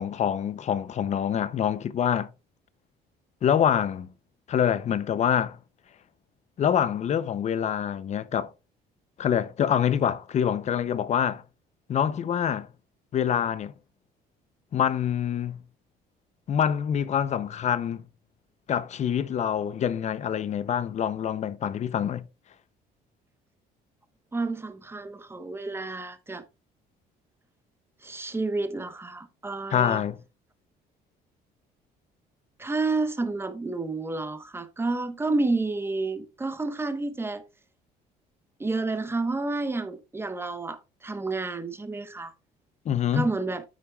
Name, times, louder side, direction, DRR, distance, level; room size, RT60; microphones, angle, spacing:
voice 1, 0.0-2.3 3.4-4.1 4.5-5.6 6.6-8.5 9.2-11.4 11.9-12.7 13.1-13.7 14.7-15.6 16.5-18.0 18.7-22.2 29.7-30.2 42.9-43.3, left 9 dB, 45° left, 0.7 m, -25 dB
voice 2, 24.3-26.4 28.0-30.0 32.6-37.5 38.6-42.3 43.1-43.6, right 3 dB, 15° right, 1.1 m, -30 dB
9.2 x 8.4 x 2.3 m
cardioid pair, 120°, 17 cm